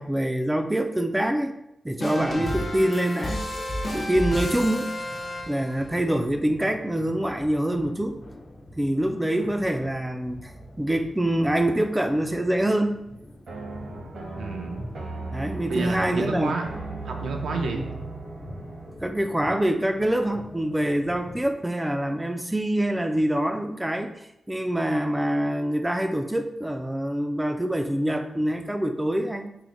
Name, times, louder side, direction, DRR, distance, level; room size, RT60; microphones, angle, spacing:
voice 1, 0.0-1.6 1.8-3.5 3.9-4.9 5.5-8.2 8.8-10.5 10.8-13.0 15.3-16.5 17.8-17.9 19.0-29.5, right 1 dB, 10° right, 6 dB, 0.3 m, -25 dB
sound 1, 2.0-5.9, left 1 dB, 45° left, 0.7 m, -31 dB
sound 2, 3.4-21.6, left 1 dB, 85° left, 1.0 m, -46 dB
sound 3, 13.5-19.0, right 3 dB, 65° right, 0.8 m, -37 dB
voice 2, 14.3-14.9 15.7-16.7 17.0-17.9, right 3 dB, 90° right, 3 dB, 0.5 m, -30 dB
4.6 x 2.1 x 3.8 m, 0.80 s
wide cardioid pair, 105°, 0 cm